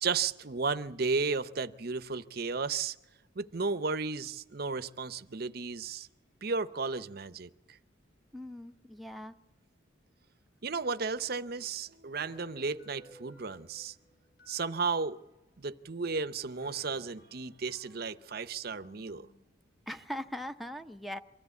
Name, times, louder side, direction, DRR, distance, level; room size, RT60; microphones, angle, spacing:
voice 1, 0.0-3.0 3.4-6.1 6.4-7.5 10.6-13.9 14.5-15.2 15.6-19.3, right 4 dB, 50° right, 0.7 m, -34 dB
voice 2, 8.3-9.4 19.9-21.2, equal, ahead, 0.7 m, -40 dB
sound 1, 12.2-15.6 16.0-16.1 16.4-19.3, left 1 dB, 60° left, 3.7 m, -59 dB
23.5 x 15.0 x 8.3 m
head